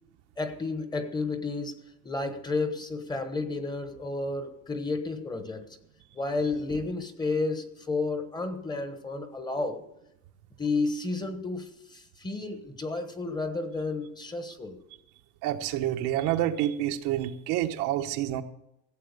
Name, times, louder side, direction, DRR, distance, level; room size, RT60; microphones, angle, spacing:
voice 1, 0.4-5.7 6.1-9.8 10.6-14.8, left 3 dB, 15° left, 9 dB, 1.1 m, -32 dB
voice 2, 15.4-18.4, right 12 dB, 75° right, 7 dB, 1.0 m, -28 dB
15.5 x 7.8 x 6.6 m, 0.82 s
cardioid pair, 150°, 32 cm